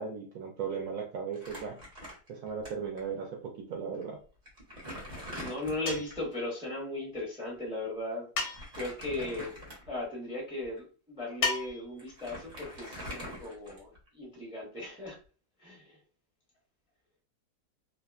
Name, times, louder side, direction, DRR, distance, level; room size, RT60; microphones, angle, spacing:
voice 1, 0.0-1.8 2.3-4.2, right 6 dB, 70° right, 1 dB, 0.8 m, -37 dB
Crumpling crinkling, 1.3-2.7 3.0-3.1 3.9-4.0 4.4-6.3 8.4-10.0 10.6-10.8 11.7-11.8 12.0-14.1, equal, 35° right, 0.7 m, -44 dB
voice 2, 5.4-8.3 8.7-9.6 9.9-15.2 15.6-16.0, left 2 dB, 5° right, -3 dB, 0.4 m, -37 dB
sound 1, 5.9-6.3 8.4-8.9 11.4-12.0, left 4 dB, 90° left, 1.3 m, -33 dB
2.7 x 2.2 x 2.3 m, 0.37 s
omnidirectional pair, 1.8 m